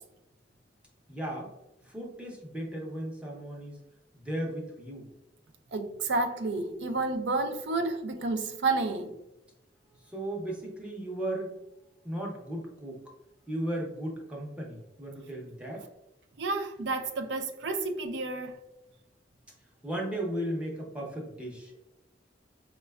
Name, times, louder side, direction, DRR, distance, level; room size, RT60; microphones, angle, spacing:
voice 1, 1.1-1.5 1.8-3.8 4.1-5.1 10.0-11.6 12.0-13.0 13.5-15.9 19.8-21.8, right 1 dB, 5° right, 0.6 m, -36 dB
voice 2, 5.7-9.1 16.4-18.6, right 3 dB, 70° right, 0.4 m, -30 dB
4.1 x 2.2 x 2.2 m
head